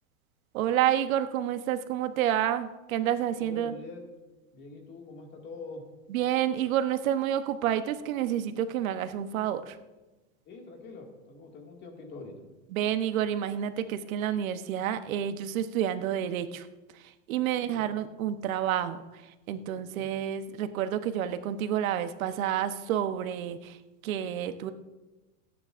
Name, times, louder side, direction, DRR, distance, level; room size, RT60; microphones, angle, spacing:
voice 1, 0.5-3.7 6.1-9.8 12.7-16.7 16.9-23.8 24.0-24.7, right 10 dB, 80° right, 10 dB, 1.0 m, -29 dB
voice 2, 3.3-4.1 4.5-5.8 10.5-12.4 17.5-17.9 19.8-20.1, left 3 dB, 25° left, 1 dB, 2.0 m, -44 dB
25.0 x 9.6 x 2.5 m, 1.1 s
supercardioid pair, 165°, 40 cm